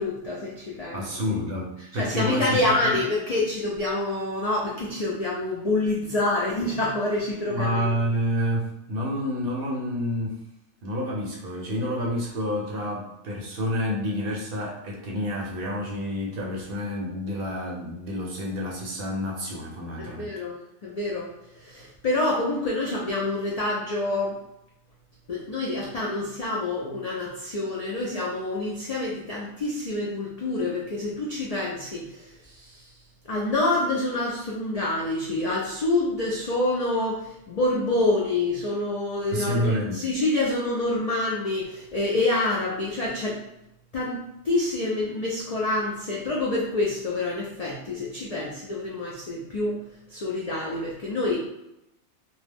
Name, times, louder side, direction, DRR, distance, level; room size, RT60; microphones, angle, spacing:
voice 1, 0.0-1.3 1.9-7.9 20.0-20.6 20.8-21.3 21.6-24.4 25.3-32.9 33.2-43.4 43.9-49.8 50.1-51.5, left 2 dB, 65° left, -4 dB, 0.3 m, -27 dB
voice 2, 0.9-3.0 7.4-10.4 10.8-20.3 39.3-40.1, equal, 60° right, -2 dB, 0.7 m, -29 dB
2.3 x 2.1 x 3.3 m, 0.85 s
omnidirectional pair, 1.2 m